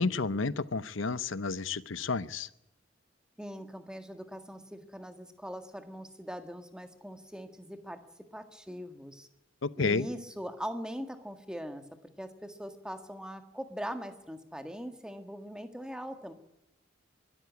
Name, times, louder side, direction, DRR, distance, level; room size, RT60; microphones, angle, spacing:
voice 1, 0.0-2.5 9.6-10.1, left 4 dB, 80° left, 17 dB, 0.8 m, -31 dB
voice 2, 3.4-8.0 8.3-9.3 9.8-11.8 12.2-16.3, equal, 5° right, 7 dB, 1.6 m, -41 dB
22.5 x 13.5 x 9.5 m, 0.86 s
head